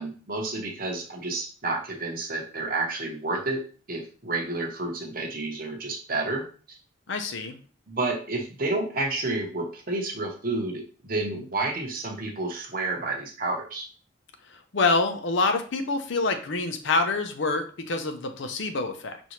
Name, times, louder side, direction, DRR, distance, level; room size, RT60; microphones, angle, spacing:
voice 1, 0.0-6.4 7.9-13.9, right 2 dB, 45° right, 2 dB, 0.9 m, -30 dB
voice 2, 7.1-7.6 14.5-19.2, left 3 dB, 65° left, 7 dB, 0.6 m, -26 dB
5.6 x 2.6 x 3.0 m, 0.39 s
head